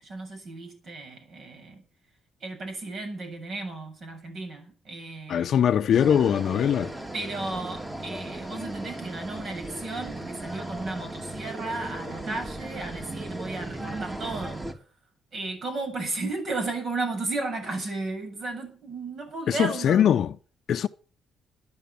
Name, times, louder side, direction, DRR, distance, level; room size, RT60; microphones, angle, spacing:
voice 1, 0.0-1.8 2.4-5.6 7.1-14.6 15.3-20.0, right 3 dB, 55° right, 7.6 m, -34 dB
voice 2, 5.3-6.9 19.5-20.3 20.7-20.9, left 9 dB, 65° left, 0.7 m, -22 dB
sound 1, 5.9-14.7, right 1 dB, 20° right, 2.9 m, -37 dB
13.0 x 10.5 x 7.0 m
cardioid pair, 90°, 0 cm